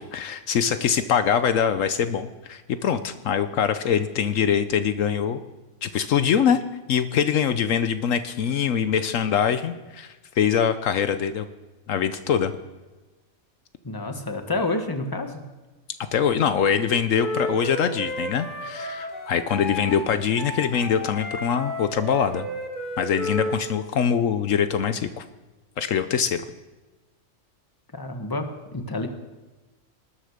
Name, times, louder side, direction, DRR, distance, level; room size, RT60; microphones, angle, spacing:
voice 1, 0.0-5.4 5.8-6.6 6.9-11.5 11.9-12.5 16.1-22.5 23.0-25.2 25.8-26.4, left 7 dB, 75° left, 10 dB, 1.1 m, -23 dB
voice 2, 13.8-15.4 27.9-29.1, left 2 dB, 15° left, 6 dB, 1.4 m, -29 dB
Wind instrument woodwind instrument, 17.1-23.6, left 1 dB, 40° left, 3.5 m, -32 dB
19.5 x 10.0 x 6.6 m, 1.2 s
omnidirectional pair, 1.4 m